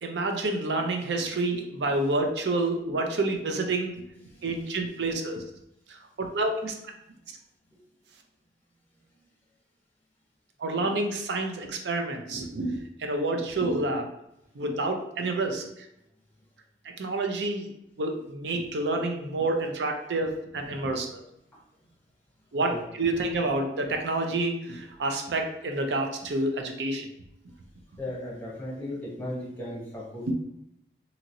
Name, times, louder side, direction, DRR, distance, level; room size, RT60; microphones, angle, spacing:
voice 1, 0.0-4.0 4.4-5.4 6.2-6.7 10.6-14.1 14.6-15.6 16.8-17.7 18.0-21.2 22.5-27.1, right 2 dB, 75° right, 4 dB, 0.5 m, -28 dB
voice 2, 28.0-30.3, left 1 dB, 10° left, -5 dB, 0.8 m, -37 dB
2.9 x 2.8 x 2.6 m, 0.83 s
head